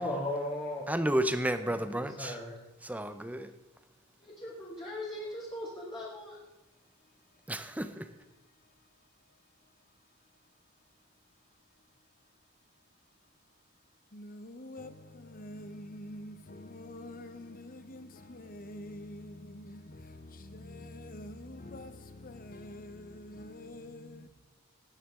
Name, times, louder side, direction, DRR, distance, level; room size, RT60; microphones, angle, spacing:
voice 1, 0.0-0.8 1.6-2.6 4.2-6.4, left 1 dB, 25° left, 2.7 m, -38 dB
voice 2, 0.9-2.4 2.8-3.5 7.5-8.1, right 1 dB, 5° right, 0.7 m, -31 dB
voice 3, 14.1-24.3, left 1 dB, 40° left, 0.9 m, -46 dB
19.5 x 9.3 x 3.7 m
head